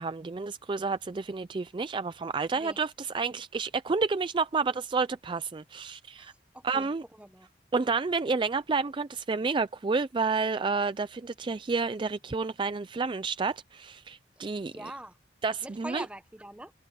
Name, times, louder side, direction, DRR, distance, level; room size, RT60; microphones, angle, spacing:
voice 1, 0.0-6.3 6.6-7.0 7.7-14.9 15.4-16.1, right 4 dB, 25° right, 0.4 m, -30 dB
voice 2, 6.2-6.9 7.2-7.5 14.4-15.2 15.6-16.7, right 1 dB, 5° right, 1.0 m, -43 dB
head